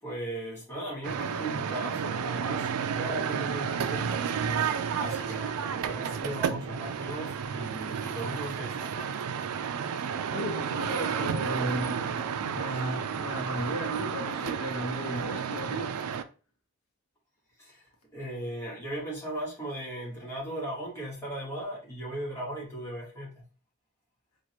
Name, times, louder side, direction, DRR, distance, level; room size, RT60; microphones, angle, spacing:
voice 1, 0.0-4.2 5.0-9.2 17.6-23.4, right 1 dB, 10° left, 1.3 m, -37 dB
sound 1, 1.0-16.2, right 7 dB, 85° right, 0.4 m, -32 dB
voice 2, 10.3-12.0 12.4-16.0, right 1 dB, 75° left, 1.0 m, -35 dB
4.6 x 2.5 x 2.9 m
head